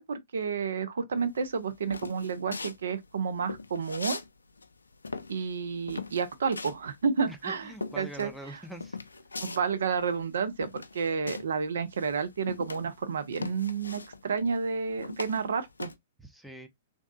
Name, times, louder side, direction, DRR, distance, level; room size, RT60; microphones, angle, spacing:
voice 1, 0.0-4.2 5.3-7.6 8.0-8.6 9.4-15.9, right 5 dB, 65° right, 0.5 m, -31 dB
sound 1, 1.3-4.3 4.6-11.6 11.9-16.0, left 3 dB, 80° left, 0.3 m, -40 dB
voice 2, 7.3-9.0 16.2-16.7, right 1 dB, ahead, 0.5 m, -44 dB
3.5 x 2.6 x 2.2 m
figure-of-eight pair, 110°, 0 cm